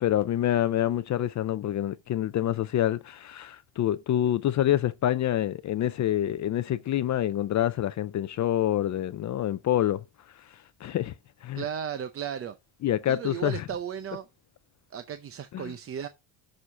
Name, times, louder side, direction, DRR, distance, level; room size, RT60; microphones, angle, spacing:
voice 1, 0.0-10.0 10.8-11.1 11.4-11.6 12.8-13.6 15.5-15.7, left 12 dB, 40° left, 0.5 m, -27 dB
voice 2, 11.5-12.6 13.1-14.3 14.9-16.1, right 8 dB, 30° right, 0.6 m, -35 dB
7.2 x 6.5 x 5.6 m
cardioid pair, 155°, 47 cm